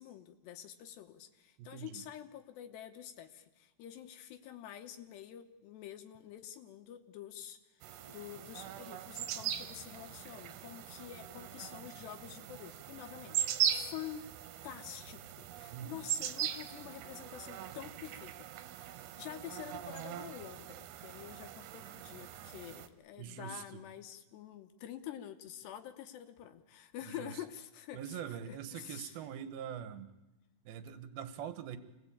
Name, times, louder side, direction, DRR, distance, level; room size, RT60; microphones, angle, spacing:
voice 1, 0.0-14.3 14.6-18.5 18.7-29.2, left 11 dB, 75° left, 8 dB, 3.0 m, -48 dB
voice 2, 1.6-2.0 15.7-16.0 23.2-23.8 27.0-27.3 27.9-30.1 30.6-31.8, right 9 dB, 65° right, 11 dB, 2.7 m, -43 dB
sound 1, 7.8-22.9, right 10 dB, 85° right, 3.5 m, -40 dB
27.0 x 19.5 x 8.7 m, 1.0 s
omnidirectional pair, 5.4 m